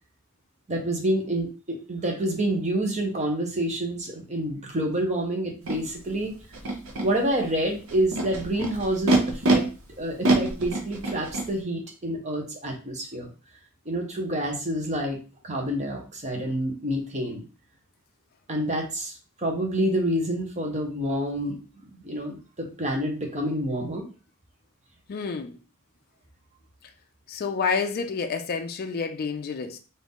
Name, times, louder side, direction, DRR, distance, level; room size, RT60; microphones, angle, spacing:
voice 1, 0.7-6.3 7.0-9.6 10.0-13.3 13.8-15.2 15.4-17.4 18.5-19.1 19.4-21.6 21.9-24.1, right 1 dB, 35° right, 1.0 m, -28 dB
Animal, 5.7-5.8 6.5-7.0 7.9-9.5 10.2-11.5, right 2 dB, 75° right, 0.8 m, -24 dB
voice 2, 25.1-25.6 27.3-29.8, left 5 dB, 45° left, 0.4 m, -29 dB
3.7 x 2.6 x 3.6 m
head